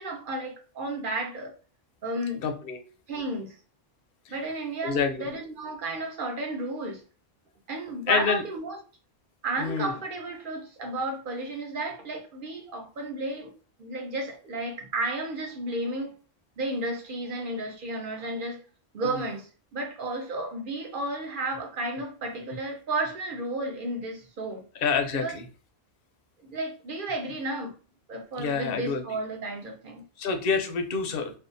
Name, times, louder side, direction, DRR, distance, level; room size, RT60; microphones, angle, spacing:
voice 1, 0.0-1.5 2.0-2.4 3.1-3.6 4.3-7.0 7.7-8.8 9.4-13.5 13.8-16.1 16.6-18.6 18.9-24.6 25.1-25.4 26.4-27.7 28.1-30.0, right 2 dB, 60° right, 0.7 m, -33 dB
voice 2, 2.4-2.8 4.3-4.4 4.8-5.3 8.1-8.4 9.6-9.9 19.0-19.2 24.8-25.4 28.4-29.0 30.2-31.3, left 5 dB, 65° left, 0.7 m, -27 dB
2.6 x 2.3 x 2.5 m
omnidirectional pair, 1.1 m